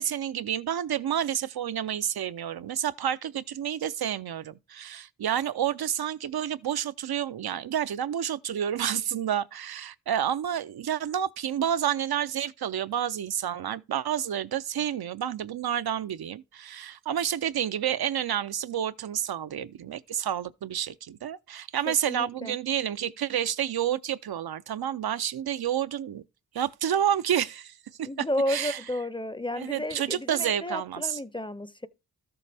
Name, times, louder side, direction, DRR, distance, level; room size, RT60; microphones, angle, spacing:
voice 1, 0.0-26.2 26.5-28.8 29.6-31.2, right 10 dB, 75° right, 0.5 m, -29 dB
voice 2, 21.9-22.6 28.0-31.9, left 1 dB, 15° left, 0.5 m, -32 dB
13.0 x 6.9 x 3.4 m
wide cardioid pair, 70°, 37 cm